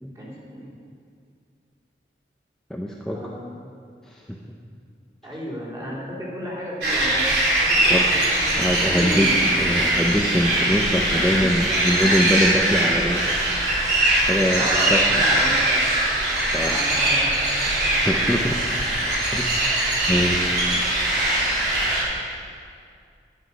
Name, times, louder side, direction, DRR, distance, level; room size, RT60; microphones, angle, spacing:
voice 1, 0.1-0.7 3.1-3.7 5.2-7.3 7.6-9.6 14.6-15.8 16.6-17.9 20.6-20.8 21.2-21.3, equal, 20° right, -6 dB, 3.1 m, -33 dB
voice 2, 2.7-3.2 4.1-4.4 5.8-5.9 7.9-8.1 8.6-9.3 9.6-13.2 14.3-15.2 16.5-16.9 18.0-18.6 19.3-19.5 20.1-20.6, equal, 5° left, -2 dB, 0.6 m, -23 dB
sound 1, 6.8-22.0, right 1 dB, 65° right, 3.7 m, -21 dB
11.0 x 10.0 x 5.9 m, 2.3 s
head